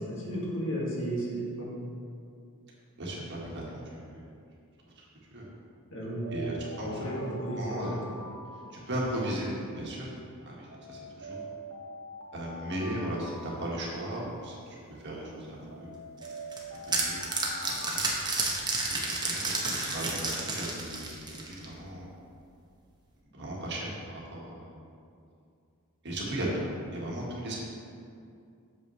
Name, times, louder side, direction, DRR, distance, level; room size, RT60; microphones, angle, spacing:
voice 1, 0.0-1.7 5.9-6.4 6.8-8.0, right 1 dB, 60° left, -5 dB, 1.9 m, -33 dB
voice 2, 3.0-3.6 3.9-4.2 5.0-5.1 5.3-5.5 6.3-7.0 7.6-8.0 8.7-10.1 10.4-11.4 12.3-15.9 16.7-17.2 17.6-18.0 19.0-19.5 19.9-20.1 20.4-22.1 23.3-24.7 26.0-27.6, right 1 dB, 55° right, -4 dB, 1.6 m, -36 dB
Alarm, 6.2-9.5 10.7-14.5 15.7-19.0, equal, 70° right, 1.2 m, -45 dB
sound 1, 16.2-21.7, right 3 dB, 20° right, 1.0 m, -31 dB
8.0 x 7.0 x 3.2 m, 2.4 s
head